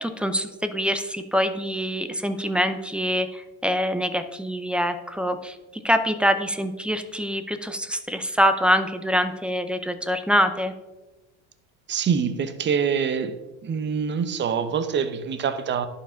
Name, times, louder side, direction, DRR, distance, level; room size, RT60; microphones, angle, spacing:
voice 1, 0.0-5.6 5.8-10.7, equal, 5° right, 0.7 m, -24 dB
voice 2, 11.9-13.4 13.6-15.9, right 7 dB, 35° right, 0.9 m, -25 dB
11.0 x 4.9 x 5.7 m
supercardioid pair, 110°, 33 cm